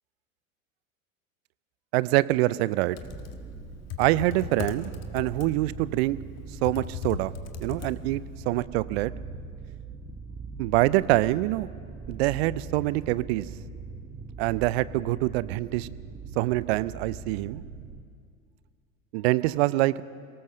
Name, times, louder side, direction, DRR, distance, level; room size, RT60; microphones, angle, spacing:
voice 1, 1.9-3.0 4.0-6.2 6.6-7.3 7.6-9.1 10.6-11.7 12.1-13.5 14.4-15.9 16.4-17.6 19.1-20.0, right 18 dB, 50° right, 19 dB, 0.6 m, -25 dB
Computer keyboard, 2.7-8.3, left 10 dB, 40° left, 1.6 m, -38 dB
sound 1, 3.0-18.0, right 4 dB, 15° right, 1.1 m, -41 dB
23.5 x 18.5 x 6.6 m, 2.2 s
figure-of-eight pair, 80°, 41 cm